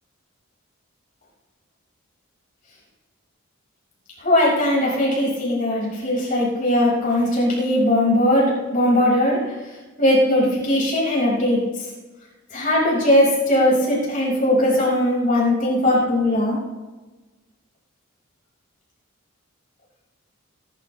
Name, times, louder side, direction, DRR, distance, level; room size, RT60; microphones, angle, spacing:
voice 1, 4.2-9.4 10.0-11.6 12.5-16.6, left 1 dB, 40° left, -5 dB, 5.7 m, -19 dB
21.0 x 12.5 x 3.3 m, 1.2 s
head